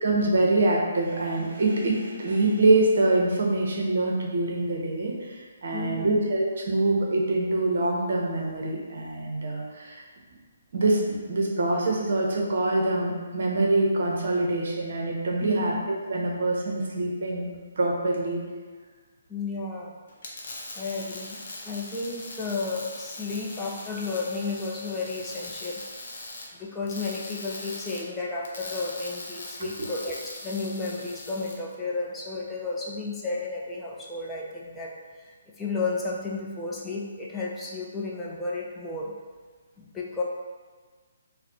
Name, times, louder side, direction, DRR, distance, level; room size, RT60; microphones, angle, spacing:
voice 1, 0.0-10.0 10.7-17.5 17.8-18.4 29.6-29.7, right 2 dB, 55° right, -1 dB, 0.6 m, -25 dB
voice 2, 5.7-6.3 15.4-15.9 19.3-20.0 20.7-25.8 26.6-30.2 30.4-39.1 39.8-40.2, left 3 dB, 10° left, -4 dB, 0.5 m, -33 dB
sound 1, 20.1-31.6, left 2 dB, 50° left, 0.6 m, -40 dB
4.0 x 2.0 x 2.7 m, 1.4 s
figure-of-eight pair, 135°, 0 cm